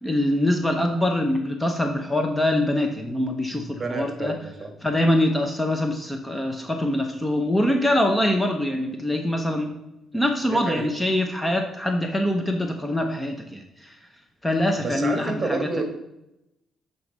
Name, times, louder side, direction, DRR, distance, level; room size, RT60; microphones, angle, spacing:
voice 1, 0.0-4.4 4.8-9.7 10.1-13.9 14.4-15.6, left 1 dB, 10° left, 4 dB, 0.8 m, -24 dB
voice 2, 3.5-4.7 10.5-10.9 14.8-15.8, right 3 dB, 35° right, 5 dB, 1.6 m, -29 dB
7.7 x 3.9 x 5.3 m, 0.88 s
cardioid pair, 90°, 0 cm